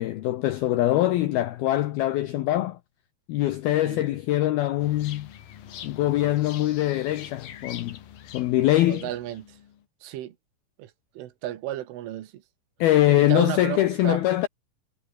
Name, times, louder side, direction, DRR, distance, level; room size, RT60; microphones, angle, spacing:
voice 1, 0.0-2.8 3.3-5.3 5.8-8.0 8.3-9.1 12.8-14.5, left 14 dB, 80° left, 2.2 m, -23 dB
sound 1, 4.8-9.8, left 10 dB, 55° left, 3.4 m, -44 dB
voice 2, 8.9-9.6 10.0-10.4 10.8-12.4 13.2-14.2, right 13 dB, 80° right, 4.2 m, -33 dB
omnidirectional pair, 5.6 m